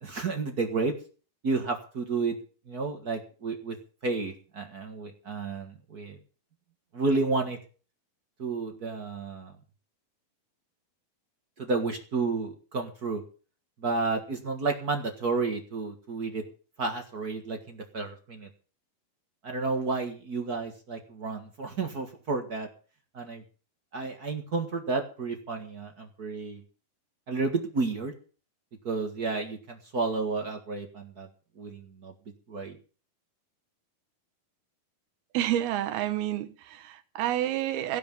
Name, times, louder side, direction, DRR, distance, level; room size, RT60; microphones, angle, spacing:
voice 1, 0.0-0.9 1.4-2.3 2.7-3.7 4.0-6.2 6.9-7.6 8.4-9.5 11.6-13.2 13.8-16.4 16.8-18.5 19.4-22.7 23.1-23.4 23.9-26.6 27.3-28.1 28.8-31.3 31.6-32.1 32.5-32.8, right 3 dB, 50° right, 1.1 m, -31 dB
voice 2, 35.3-38.0, right 12 dB, 75° right, 3.0 m, -29 dB
17.0 x 6.1 x 9.2 m
omnidirectional pair, 4.5 m